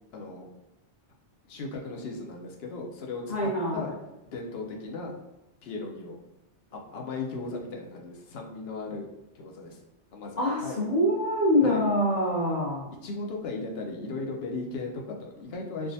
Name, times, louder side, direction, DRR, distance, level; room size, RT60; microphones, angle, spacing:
voice 1, 0.1-0.5 1.5-3.9 4.3-5.1 5.6-6.2 6.7-9.1 9.3-9.8 10.1-10.9 11.6-11.9 13.0-15.9, left 3 dB, 65° left, 1 dB, 0.8 m, -37 dB
voice 2, 3.3-3.9 10.4-12.9, left 1 dB, 40° left, -5 dB, 1.0 m, -25 dB
3.5 x 2.3 x 2.6 m, 0.94 s
omnidirectional pair, 1.2 m